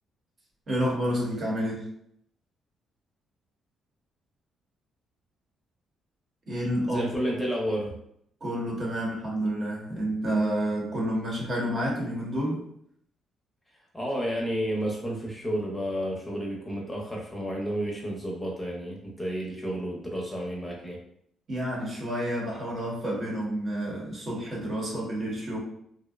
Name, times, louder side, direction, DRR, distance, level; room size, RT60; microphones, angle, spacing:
voice 1, 0.7-1.9 6.5-7.0 8.4-12.6 21.5-25.6, equal, 50° right, -3 dB, 0.9 m, -29 dB
voice 2, 6.9-7.9 13.9-21.0, equal, 10° left, -2 dB, 0.6 m, -31 dB
2.6 x 2.0 x 2.4 m, 0.68 s
cardioid pair, 90°, 0 cm